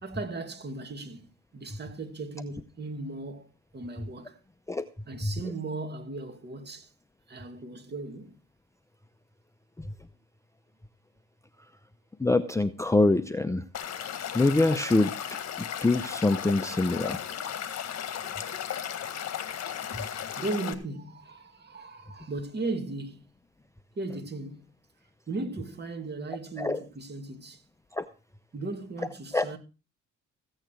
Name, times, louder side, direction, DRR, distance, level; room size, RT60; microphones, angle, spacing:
voice 1, 0.0-3.5 3.7-4.4 5.1-6.9 7.3-8.4 19.1-19.6 20.0-23.3 24.0-24.7 25.3-27.6 28.5-29.6, right 2 dB, 35° right, 2.4 m, -37 dB
voice 2, 12.2-13.6 14.3-15.1 15.8-17.2 26.6-26.8 28.0-28.1 29.3-29.5, left 2 dB, 10° left, 0.7 m, -24 dB
Stream / Liquid, 13.7-20.7, left 9 dB, 60° left, 1.7 m, -35 dB
15.0 x 8.9 x 4.6 m
cardioid pair, 90°, 30 cm